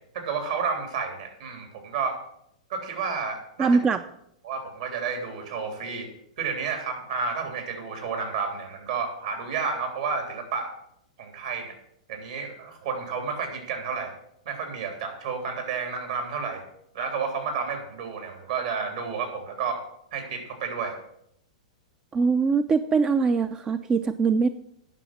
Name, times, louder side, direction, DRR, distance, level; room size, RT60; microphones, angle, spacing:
voice 1, 0.1-2.1 2.7-3.7 4.4-6.1 6.4-10.7 11.2-11.7 12.1-14.1 14.4-16.6 16.9-19.8 20.1-21.0, right 5 dB, 65° right, 4 dB, 3.3 m, -31 dB
voice 2, 3.6-4.0 22.1-24.5, right 5 dB, 20° right, 11 dB, 0.5 m, -22 dB
9.8 x 6.4 x 7.5 m, 0.75 s
hypercardioid pair, 110°, 4 cm